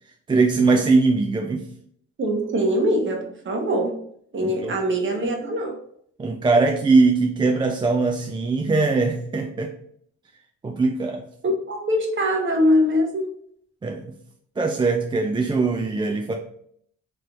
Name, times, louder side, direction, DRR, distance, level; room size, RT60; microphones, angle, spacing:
voice 1, 0.3-1.6 4.4-4.8 6.2-9.7 10.6-11.2 13.8-14.1 14.6-16.3, right 3 dB, 15° right, 3 dB, 0.4 m, -21 dB
voice 2, 2.2-4.0 4.3-5.8 11.4-13.3, equal, 40° right, 3 dB, 1.0 m, -22 dB
3.2 x 3.0 x 3.8 m, 0.66 s
cardioid pair, 90°, 30 cm